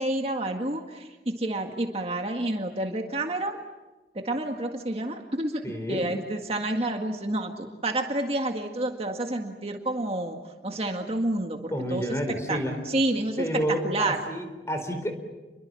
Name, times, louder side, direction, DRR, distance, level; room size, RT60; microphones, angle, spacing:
voice 1, 0.0-3.6 4.2-5.6 5.9-10.4 10.6-12.0 12.5-12.6 12.9-13.5 13.8-14.2, right 1 dB, 35° right, 3 dB, 1.9 m, -29 dB
voice 2, 5.6-6.1 11.7-12.8 13.4-15.2, equal, 15° left, 6 dB, 4.2 m, -30 dB
30.0 x 23.0 x 7.7 m, 1.1 s
head